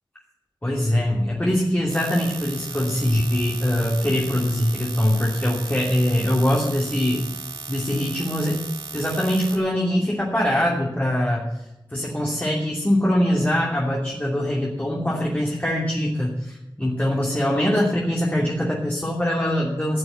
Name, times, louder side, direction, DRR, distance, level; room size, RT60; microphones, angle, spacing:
voice 1, 0.6-7.3 7.7-8.6 8.9-11.5 11.9-20.0, left 1 dB, 20° left, -4 dB, 2.8 m, -23 dB
sound 1, 1.9-9.6, right 2 dB, 65° right, 2.8 m, -36 dB
14.5 x 6.9 x 8.3 m, 0.96 s
wide cardioid pair, 55°, 9 cm